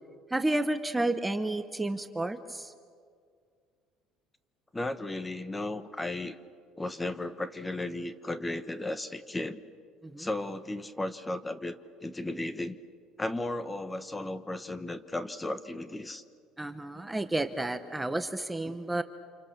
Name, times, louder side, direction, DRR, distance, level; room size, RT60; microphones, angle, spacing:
voice 1, 0.3-2.7 10.0-10.3 16.6-19.0, right 2 dB, 10° right, 9 dB, 1.0 m, -31 dB
voice 2, 4.7-6.4 6.8-9.6 10.2-11.8 12.0-12.8 13.2-16.2 18.7-18.8, left 2 dB, 10° left, 12 dB, 1.2 m, -35 dB
29.5 x 27.5 x 6.8 m, 2.1 s
cardioid pair, 120°, 0 cm